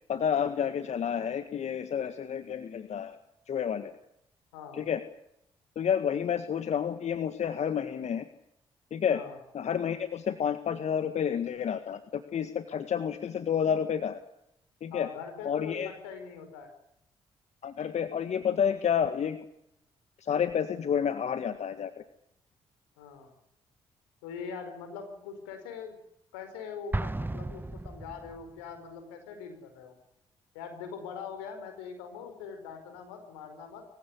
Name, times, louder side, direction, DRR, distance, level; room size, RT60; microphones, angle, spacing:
voice 1, 0.1-3.2 3.5-3.9 4.8-5.0 5.8-8.3 8.9-9.2 9.5-14.2 14.8-15.1 15.5-15.9 17.6-19.4 20.2-21.9, left 8 dB, 60° left, 10 dB, 1.8 m, -30 dB
voice 2, 4.5-4.8 9.1-9.4 14.9-16.7 23.0-23.3 24.2-26.0 26.3-30.0 30.5-33.9, left 6 dB, 90° left, 7 dB, 4.9 m, -42 dB
Explosion, 26.9-28.6, right 2 dB, 15° right, 1.0 m, -34 dB
26.0 x 16.0 x 9.9 m, 0.79 s
hypercardioid pair, 45°, 13 cm